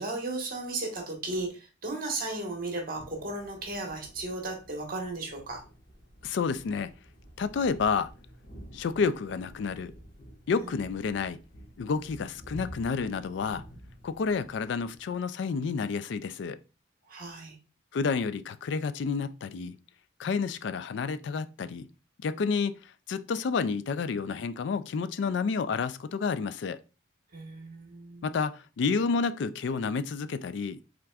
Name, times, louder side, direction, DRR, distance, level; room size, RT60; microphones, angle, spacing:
voice 1, 0.0-5.6 10.5-10.6 17.1-17.5 27.3-28.3, right 2 dB, 50° right, 1.3 m, -35 dB
sound 1, 2.9-15.2, right 1 dB, 45° left, 1.4 m, -50 dB
voice 2, 6.2-7.0 7.4-8.1 8.7-10.0 10.5-11.4 11.8-13.6 14.0-16.6 17.9-19.8 20.2-21.9 22.2-26.8 28.2-30.8, left 5 dB, 65° left, 0.3 m, -30 dB
5.9 x 3.7 x 2.3 m
head